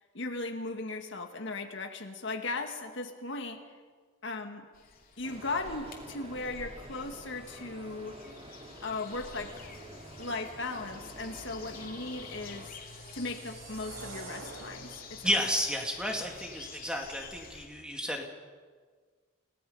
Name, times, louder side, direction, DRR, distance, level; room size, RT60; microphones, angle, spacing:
voice 1, 0.1-3.6 4.2-4.7 5.2-8.2 8.8-9.6 10.2-12.8 13.1-15.3, left 3 dB, 60° left, 5 dB, 1.8 m, -37 dB
sound 1, 4.7-17.7, left 4 dB, 45° left, 2.9 m, -49 dB
sound 2, 5.2-12.7, right 1 dB, 30° right, 2.5 m, -49 dB
sound 3, 12.2-15.4, right 3 dB, 85° right, 2.6 m, -48 dB
voice 2, 15.2-18.2, equal, 5° right, 2 dB, 2.2 m, -32 dB
29.5 x 18.0 x 5.5 m, 1.5 s
head